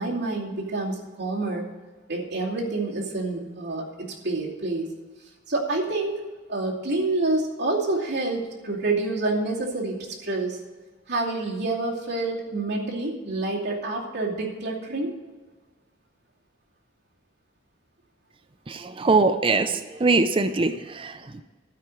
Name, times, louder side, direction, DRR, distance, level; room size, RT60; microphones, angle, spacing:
voice 1, 0.0-1.7 2.1-4.9 5.5-6.2 6.5-10.6 11.1-15.1, right 2 dB, 55° right, -5 dB, 2.6 m, -28 dB
voice 2, 18.7-21.4, right 3 dB, 25° right, 7 dB, 0.4 m, -22 dB
12.5 x 4.8 x 7.7 m, 1.3 s
head